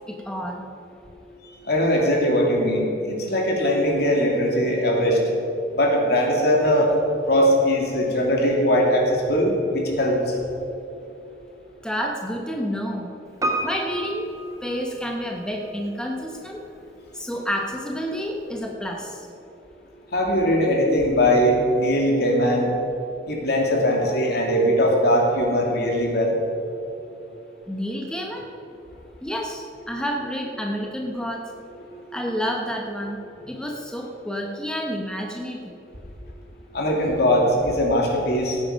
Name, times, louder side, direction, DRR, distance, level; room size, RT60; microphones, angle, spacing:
voice 1, 0.1-0.6 11.8-13.1 13.6-14.3 14.6-16.6 17.1-19.3 27.7-28.5 29.2-31.5 32.1-35.7, equal, 5° left, 0 dB, 1.0 m, -29 dB
voice 2, 1.7-5.2 5.7-6.9 7.3-10.2 20.1-22.7 23.3-26.4 31.9-32.0 36.7-38.7, equal, 65° left, -1 dB, 2.7 m, -20 dB
Piano, 13.4-15.5 15.7-15.8, right 1 dB, 20° right, 1.5 m, -30 dB
17.0 x 9.3 x 5.2 m, 2.8 s
head